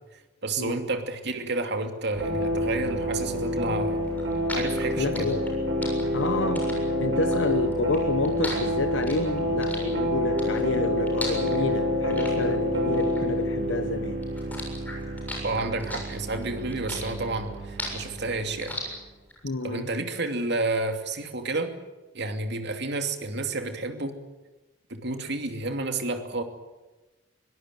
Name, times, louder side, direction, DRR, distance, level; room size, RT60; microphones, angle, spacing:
voice 1, 0.4-4.0 4.5-5.3 15.4-18.8 19.6-21.7 22.1-24.2 24.9-26.4, right 2 dB, 65° right, 6 dB, 2.7 m, -30 dB
sound 1, 2.1-18.9, left 1 dB, 80° right, 7.7 m, -28 dB
sound 2, 4.1-13.9 14.2-19.4, left 1 dB, 10° left, 7.1 m, -37 dB
voice 2, 5.0-5.4 6.1-6.7 7.0-14.2 19.4-19.9, left 2 dB, 75° left, 10 dB, 1.1 m, -29 dB
23.5 x 18.0 x 9.3 m, 1.1 s
head